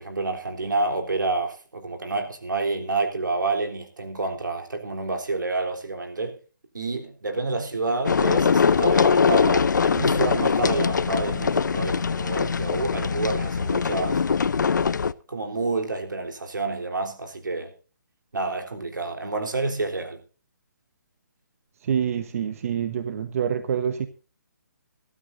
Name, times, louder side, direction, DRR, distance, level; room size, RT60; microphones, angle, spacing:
voice 1, 0.0-6.4 6.7-14.2 15.3-17.7 18.3-20.2, right 3 dB, 85° right, 3.7 m, -28 dB
sound 1, 8.1-15.1, left 5 dB, 75° left, 0.7 m, -22 dB
voice 2, 21.8-24.1, right 8 dB, 50° right, 1.1 m, -26 dB
22.5 x 12.5 x 2.6 m
figure-of-eight pair, 145°, 10 cm